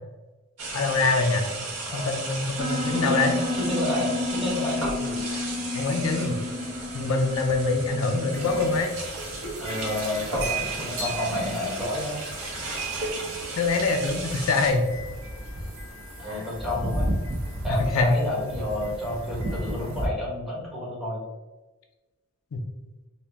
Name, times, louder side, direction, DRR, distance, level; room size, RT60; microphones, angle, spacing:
sound 1, 0.6-14.7, right 2 dB, 85° right, 1.0 m, -35 dB
voice 1, 0.7-1.4 1.9-3.3 5.7-6.4 6.9-8.9 13.6-14.9 17.9-18.2 22.5-22.6, left 3 dB, 70° left, 4 dB, 0.5 m, -24 dB
Piano, 2.6-8.8, left 2 dB, 20° right, 0.7 m, -31 dB
voice 2, 3.5-5.3 9.6-12.2 16.2-17.1 17.6-21.2, left 1 dB, ahead, -7 dB, 1.2 m, -30 dB
sound 2, 8.3-20.1, right 1 dB, 60° right, 0.8 m, -34 dB
4.1 x 2.2 x 3.4 m, 1.2 s
head